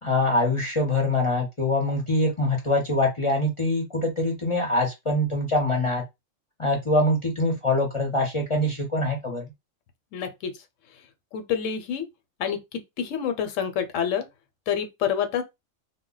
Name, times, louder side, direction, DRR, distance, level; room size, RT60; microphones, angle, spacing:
voice 1, 0.0-6.0 6.6-9.5, left 1 dB, 35° left, 0.6 m, -24 dB
voice 2, 10.1-10.5 11.3-12.1 12.4-14.2 14.7-15.4, left 8 dB, 80° left, 0.9 m, -27 dB
2.1 x 2.0 x 3.8 m
omnidirectional pair, 1.3 m